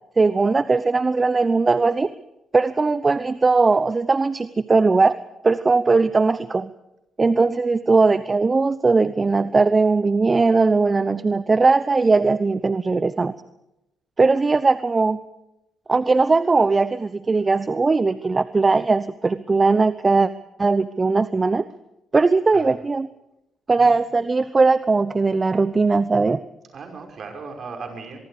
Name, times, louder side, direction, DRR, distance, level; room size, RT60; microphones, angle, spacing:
voice 1, 0.2-2.1 2.5-5.2 5.4-6.7 7.2-13.3 14.2-15.2 15.9-20.3 20.6-21.6 22.1-23.1 23.7-26.4, right 3 dB, 30° right, 15 dB, 0.9 m, -19 dB
voice 2, 26.7-28.2, right 4 dB, 55° right, 4 dB, 5.7 m, -37 dB
24.0 x 23.0 x 5.1 m, 0.89 s
hypercardioid pair, 45°, 0 cm